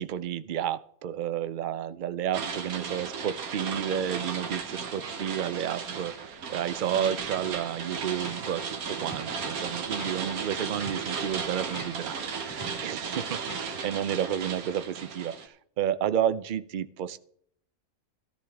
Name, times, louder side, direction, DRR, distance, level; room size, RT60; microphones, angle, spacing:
voice 1, 0.0-17.2, right 10 dB, 65° right, 13 dB, 0.5 m, -31 dB
sound 1, 2.3-15.5, right 5 dB, 85° right, 1.6 m, -35 dB
sound 2, 6.2-6.6 6.9-7.0 7.3-14.0, equal, 15° left, 1.6 m, -46 dB
13.5 x 13.5 x 3.5 m, 0.65 s
omnidirectional pair, 1.5 m